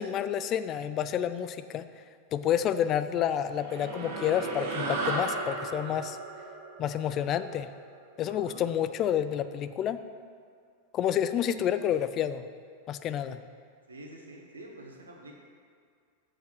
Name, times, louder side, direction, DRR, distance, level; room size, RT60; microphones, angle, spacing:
voice 1, 0.0-1.9 2.3-6.2 6.8-7.7 8.2-10.0 10.9-12.4 12.9-13.4, left 10 dB, 35° left, 12 dB, 0.4 m, -29 dB
sound 1, 3.5-8.2, right 2 dB, 55° right, 1.4 m, -35 dB
voice 2, 8.2-8.6 13.9-15.4, right 2 dB, 75° right, 1 dB, 1.3 m, -47 dB
7.1 x 6.0 x 6.1 m, 2.2 s
figure-of-eight pair, 90°, 0 cm